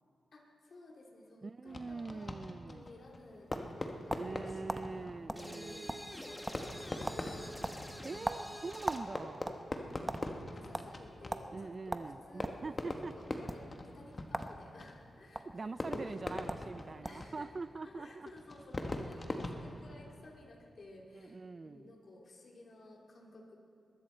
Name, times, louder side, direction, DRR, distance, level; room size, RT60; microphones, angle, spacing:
voice 1, 0.3-8.3 9.7-16.2 17.0-17.5 17.8-23.5, left 2 dB, 60° left, 0 dB, 2.6 m, -55 dB
voice 2, 1.4-2.9 4.2-6.0 8.0-9.6 11.5-13.1 15.5-18.3 21.1-21.9, right 3 dB, 45° right, 16 dB, 0.4 m, -43 dB
Fireworks, 1.7-20.5, left 2 dB, 35° left, 1.3 m, -43 dB
sound 1, 2.9-4.4 4.7-4.8 5.3-5.5 5.7-6.2 6.5-6.8 7.1-7.2 7.6-9.1 9.4-10.2 10.7-10.9 11.3-11.5 11.9-12.6 13.4-13.6 14.3-14.5 14.8-15.4 16.2-16.3 16.5-16.7 17.0-17.3, right 1 dB, 15° right, 0.8 m, -38 dB
sound 2, 5.4-9.1, equal, 10° left, 1.6 m, -47 dB
22.0 x 13.0 x 4.4 m, 2.8 s
cardioid pair, 70°, 0 cm